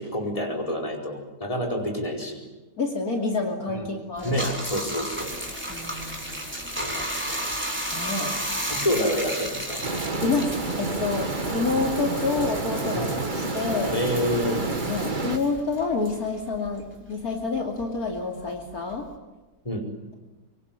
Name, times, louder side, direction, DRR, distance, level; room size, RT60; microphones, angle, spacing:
voice 1, 0.0-2.5 3.7-3.9 4.2-5.3 6.8-7.5 8.7-9.8 12.9-13.1 13.9-14.6 19.6-19.9, equal, 20° left, 1 dB, 4.9 m, -28 dB
voice 2, 2.8-4.5 5.7-6.3 7.9-8.3 10.2-13.9 14.9-19.1, left 3 dB, 60° left, 2 dB, 3.2 m, -28 dB
Bathtub (filling or washing), 4.2-17.0 17.3-19.1, equal, 5° right, 4.2 m, -34 dB
sound 1, 9.8-15.4, right 3 dB, 30° right, 1.6 m, -29 dB
24.5 x 24.5 x 9.2 m, 1.1 s
omnidirectional pair, 1.8 m